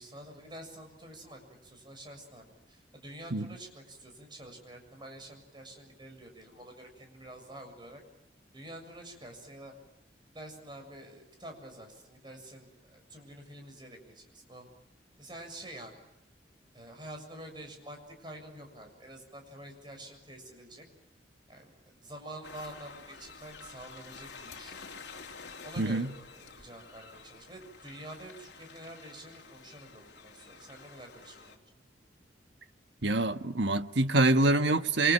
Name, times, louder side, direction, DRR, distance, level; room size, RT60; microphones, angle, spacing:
voice 1, 0.0-8.0 8.5-9.7 10.3-14.7 15.2-16.0 16.7-20.9 21.5-24.8 25.6-31.6, right 1 dB, 25° right, 7.1 m, -48 dB
sound 1, 22.4-31.6, left 4 dB, 70° left, 3.2 m, -49 dB
voice 2, 25.8-26.1 33.0-35.1, right 2 dB, 75° right, 1.4 m, -25 dB
28.5 x 25.0 x 7.7 m
head